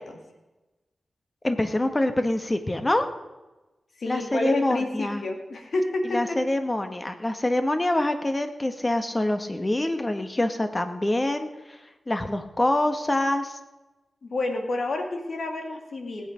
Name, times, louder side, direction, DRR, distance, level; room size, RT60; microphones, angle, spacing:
voice 1, 1.4-3.0 4.1-5.2 6.1-11.8 12.1-13.6, left 1 dB, 25° left, 8 dB, 1.6 m, -25 dB
voice 2, 4.0-6.4 14.2-16.3, left 2 dB, 70° left, 3 dB, 2.4 m, -29 dB
19.0 x 8.6 x 5.2 m, 1.1 s
cardioid pair, 55°, 0 cm